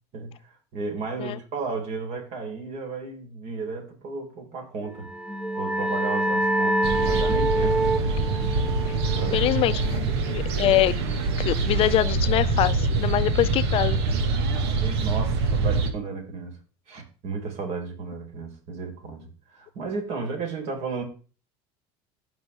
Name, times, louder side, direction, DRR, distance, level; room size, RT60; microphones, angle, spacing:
voice 1, 0.1-5.1 5.5-7.8 9.0-9.5 9.9-10.2 13.4-13.5 14.8-16.6 16.9-21.0, right 4 dB, 50° right, 4.7 m, -34 dB
sound 1, 4.9-10.3, right 1 dB, 5° right, 0.9 m, -27 dB
sound 2, 6.8-15.9, right 3 dB, 85° right, 2.0 m, -25 dB
voice 2, 9.3-10.9 11.4-14.0, left 14 dB, 45° left, 0.6 m, -24 dB
15.0 x 6.0 x 3.7 m
supercardioid pair, 120°, 13 cm